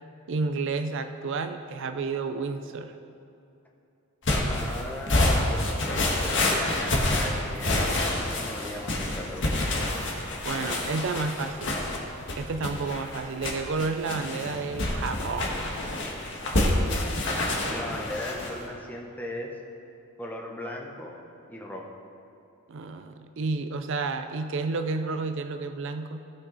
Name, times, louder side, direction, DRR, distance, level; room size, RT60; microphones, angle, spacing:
voice 1, 0.3-2.9 10.4-11.7 12.4-15.9 22.7-26.2, right 4 dB, 60° right, 8 dB, 0.4 m, -31 dB
sound 1, 4.2-18.6, left 1 dB, 55° left, 1.5 m, -27 dB
voice 2, 4.5-9.6 17.7-19.5 20.2-21.2 21.5-21.8, left 1 dB, 10° left, -1 dB, 0.9 m, -37 dB
16.5 x 6.1 x 4.0 m, 2.7 s
head